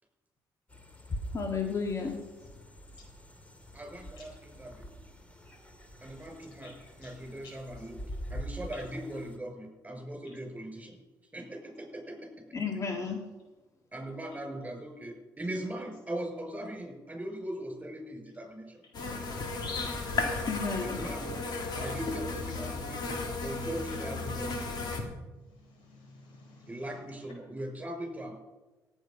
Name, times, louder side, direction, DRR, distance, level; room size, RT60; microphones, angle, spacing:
sound 1, 0.7-9.4, equal, 15° left, 2.0 m, -44 dB
voice 1, 1.3-2.2 12.5-13.2 20.5-21.0, left 5 dB, 40° left, 2 dB, 1.9 m, -32 dB
voice 2, 3.7-4.9 6.0-6.7 7.0-8.0 8.3-11.0 11.3-12.3 13.9-18.8 20.8-21.3 21.7-23.1 23.4-24.6 26.7-28.3, right 1 dB, 15° right, 2 dB, 5.6 m, -39 dB
sound 2, 18.9-25.0, left 3 dB, 60° left, 2.3 m, -34 dB
voice 3, 25.5-26.8, left 2 dB, 90° left, 1 dB, 4.4 m, -56 dB
17.5 x 8.3 x 5.3 m, 1.2 s
cardioid pair, 90°, 8 cm